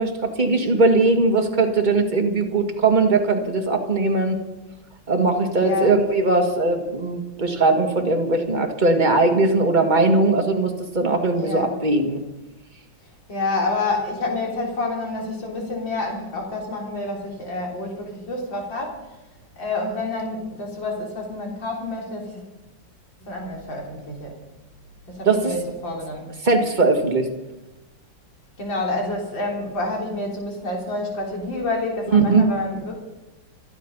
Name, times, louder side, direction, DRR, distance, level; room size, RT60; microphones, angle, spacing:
voice 1, 0.0-4.4 5.1-12.2 25.3-25.5 26.4-27.3 32.1-32.4, right 3 dB, 25° right, 3 dB, 1.9 m, -19 dB
voice 2, 5.6-6.0 11.3-11.7 13.3-19.1 19.6-22.4 23.2-24.4 25.1-26.3 28.6-33.0, left 2 dB, 80° left, -1 dB, 4.3 m, -28 dB
27.0 x 9.6 x 5.5 m, 1.0 s
omnidirectional pair, 2.0 m